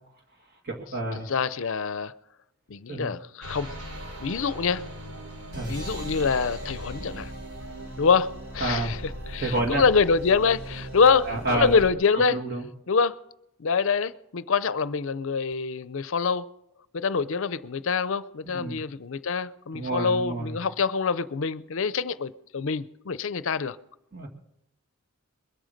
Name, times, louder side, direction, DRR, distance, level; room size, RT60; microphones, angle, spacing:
voice 1, 0.6-1.3 2.9-3.1 5.5-5.7 8.6-8.9 9.4-9.8 11.2-11.8 12.3-12.7 18.5-18.8 19.7-20.5 24.1-24.3, right 2 dB, 45° right, 2.2 m, -29 dB
voice 2, 1.3-2.1 2.7-3.7 4.2-4.8 5.7-7.3 8.0-9.0 9.3-12.4 12.9-13.1 13.6-16.5 16.9-23.8, left 5 dB, 60° left, 0.5 m, -25 dB
sound 1, 3.4-11.9, right 1 dB, 90° right, 3.4 m, -38 dB
21.5 x 9.0 x 6.5 m
head